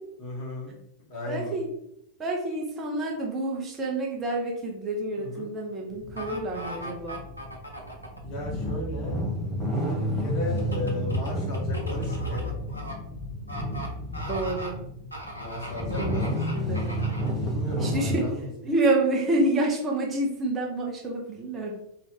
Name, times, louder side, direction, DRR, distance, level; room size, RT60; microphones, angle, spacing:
voice 1, 0.2-0.8 1.1-1.6 5.2-5.5 8.2-9.2 10.0-12.5 15.3-16.4 17.4-18.5, left 1 dB, 40° left, -2 dB, 1.5 m, -35 dB
voice 2, 1.3-1.7 2.2-7.2 14.2-14.8 16.0-16.2 16.5-17.0 17.8-18.2 18.6-21.8, right 2 dB, 20° right, -1 dB, 1.0 m, -28 dB
sound 1, 5.9-18.2, equal, 20° left, 1.2 m, -30 dB
sound 2, 6.2-8.2 10.6-12.9 13.5-13.9 14.1-14.7 15.1-17.3 17.8-17.9, equal, 85° left, 0.9 m, -39 dB
3.2 x 2.9 x 4.3 m, 0.77 s
figure-of-eight pair, 90°, 0 cm